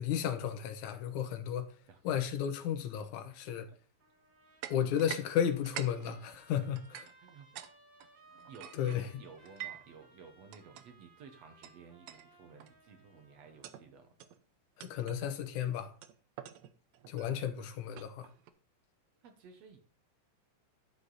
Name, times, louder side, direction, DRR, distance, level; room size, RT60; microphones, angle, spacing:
voice 1, 0.0-1.7 2.0-3.7 4.7-7.1 8.7-9.1 14.8-15.9 17.1-18.3, left 9 dB, 70° left, 2.2 m, -33 dB
Trumpet, 4.0-13.7, right 3 dB, 25° right, 2.2 m, -62 dB
sound 1, 4.6-5.3 5.5-7.7 8.0-9.9 10.5-10.8 11.6-11.7 12.1-12.3 12.6-12.9 13.4-13.9 14.2-14.4 14.8-15.2 16.0-18.5, right 12 dB, 80° right, 1.6 m, -47 dB
voice 2, 8.5-14.1 19.2-19.8, right 5 dB, 60° right, 2.1 m, -54 dB
11.5 x 5.1 x 4.0 m
omnidirectional pair, 3.9 m